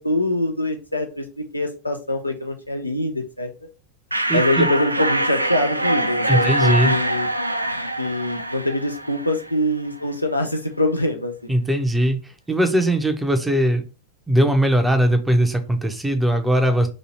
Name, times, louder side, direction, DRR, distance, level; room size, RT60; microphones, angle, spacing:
voice 1, 0.0-3.5 4.3-7.3 8.0-11.3, left 1 dB, 85° left, 5 dB, 0.6 m, -24 dB
sound 1, 4.1-9.6, right 1 dB, 85° right, 0.3 m, -24 dB
voice 2, 4.3-4.7 6.3-6.9 11.5-13.8 14.3-16.9, right 1 dB, 5° right, 7 dB, 0.7 m, -20 dB
3.0 x 2.7 x 4.1 m, 0.33 s
figure-of-eight pair, 90°, 0 cm